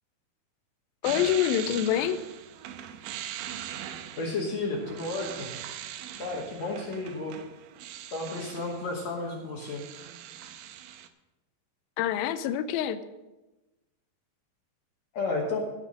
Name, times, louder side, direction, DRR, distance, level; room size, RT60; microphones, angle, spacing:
voice 1, 1.0-2.2 12.0-13.0, left 10 dB, 80° left, 12 dB, 2.3 m, -26 dB
sound 1, 1.0-9.0 9.3-11.1, right 11 dB, 80° right, 2.3 m, -41 dB
voice 2, 4.2-5.5 6.2-7.3 8.1-9.8 15.1-15.6, left 3 dB, 60° left, 0 dB, 1.9 m, -32 dB
15.5 x 5.8 x 6.3 m, 1.1 s
omnidirectional pair, 4.7 m